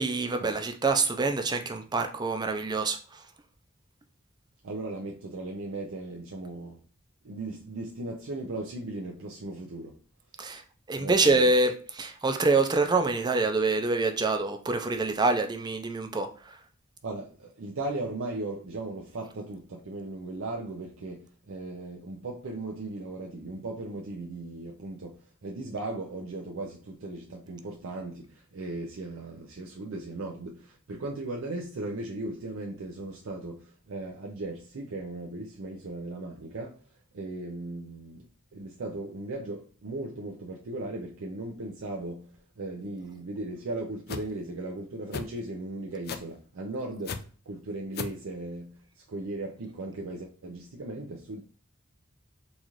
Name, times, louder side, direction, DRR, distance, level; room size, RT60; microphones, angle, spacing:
voice 1, 0.0-3.0 10.4-10.6 10.9-16.5, right 3 dB, 20° right, 0.4 m, -26 dB
voice 2, 4.6-6.8 7.2-10.0 11.0-11.5 17.0-28.2 28.5-36.8 37.1-38.3 38.5-42.3 42.6-48.7 49.1-51.4, right 2 dB, 80° right, 0.5 m, -37 dB
sound 1, 44.1-44.3 45.1-45.3 46.1-46.3 47.1-47.2 47.9-48.2, left 6 dB, 50° left, 0.4 m, -34 dB
4.0 x 2.4 x 3.0 m
head